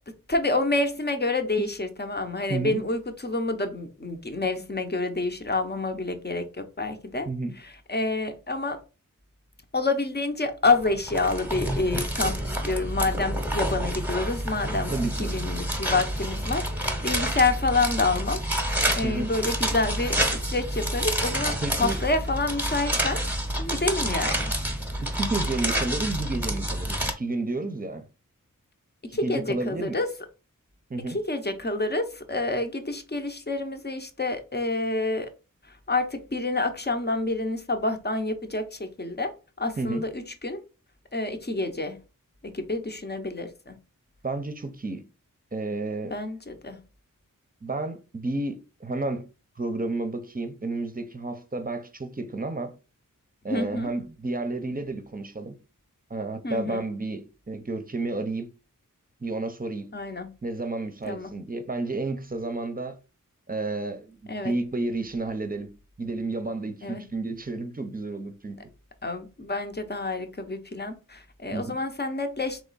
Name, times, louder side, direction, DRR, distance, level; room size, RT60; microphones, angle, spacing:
voice 1, 0.3-7.3 7.6-8.8 9.7-18.4 19.0-23.2 23.6-24.5 29.0-30.1 31.1-35.3 35.7-39.3 39.6-40.6 41.1-42.0 42.4-43.8 46.1-46.8 53.5-53.9 56.4-56.8 59.9-60.3 61.1-61.3 64.3-64.5 66.8-67.0 69.0-72.6, left 2 dB, 30° left, 0.8 m, -28 dB
voice 2, 2.5-2.8 7.3-7.5 14.9-15.3 19.0-19.3 21.6-22.0 25.0-28.0 29.1-30.0 30.9-31.2 39.8-40.0 44.2-45.0 45.5-46.1 47.6-49.3 49.6-52.7 53.4-55.6 56.1-58.5 59.2-59.9 60.4-63.0 63.5-65.7 66.0-68.6 71.5-71.8, right 2 dB, 25° right, 0.7 m, -31 dB
sound 1, 10.6-27.1, right 1 dB, 5° right, 1.0 m, -28 dB
3.5 x 3.0 x 4.0 m
wide cardioid pair, 45°, 34 cm